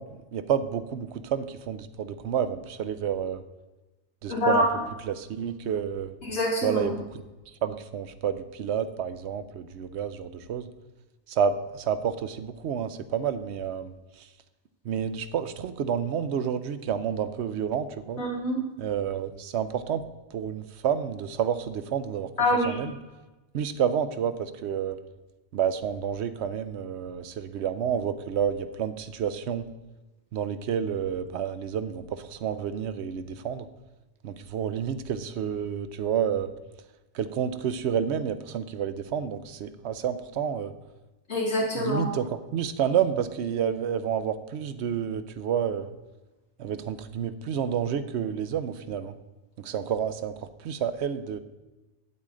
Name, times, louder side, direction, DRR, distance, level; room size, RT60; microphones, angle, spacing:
voice 1, 0.0-3.4 4.2-4.7 5.1-6.1 6.6-7.0 7.6-10.7 11.3-14.3 14.8-18.2 18.8-20.0 20.3-22.3 22.6-22.9 23.5-25.0 25.5-29.7 30.3-33.7 34.2-36.5 37.1-40.7 41.7-45.9 46.6-49.2 49.6-51.4, right 8 dB, 75° right, 12 dB, 0.9 m, -29 dB
voice 2, 4.3-4.7 6.2-6.9 18.2-18.6 22.4-22.8 41.3-42.1, left 1 dB, 75° left, -4 dB, 2.8 m, -25 dB
8.5 x 8.2 x 3.7 m, 1.1 s
omnidirectional pair, 1.2 m